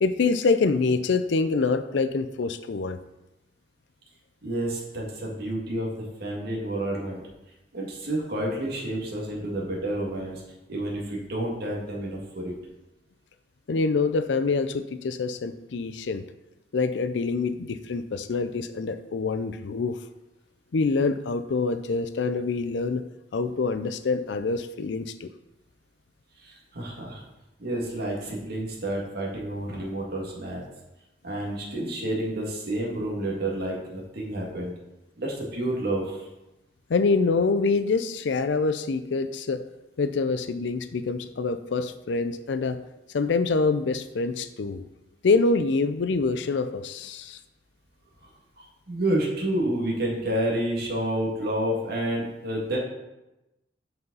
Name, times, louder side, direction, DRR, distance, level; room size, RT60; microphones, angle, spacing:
voice 1, 0.0-3.0 13.7-16.2 16.7-20.0 20.7-23.0 23.3-25.3 36.9-39.6 40.0-42.8 43.1-44.8 45.2-47.4, left 4 dB, 75° left, 11 dB, 0.5 m, -25 dB
voice 2, 4.4-7.2 7.7-10.4 10.7-12.5 26.4-27.2 27.6-30.6 31.2-34.7 35.2-36.3 48.2-52.8, right 1 dB, 60° right, -2 dB, 2.0 m, -29 dB
7.9 x 5.5 x 4.0 m, 0.97 s
head